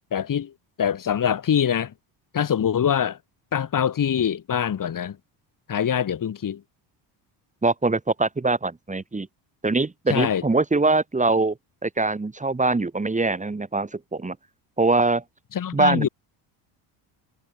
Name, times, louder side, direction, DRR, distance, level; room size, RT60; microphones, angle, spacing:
voice 1, 0.1-0.5 0.8-1.9 2.3-3.2 3.5-5.2 5.7-6.6 10.1-10.4 15.5-16.1, left 8 dB, 40° left, 4.4 m, -24 dB
voice 2, 7.6-9.3 9.6-11.6 11.8-14.4 14.8-15.2 15.7-16.1, right 3 dB, 15° right, 3.6 m, -23 dB
cardioid pair, 115°, 48 cm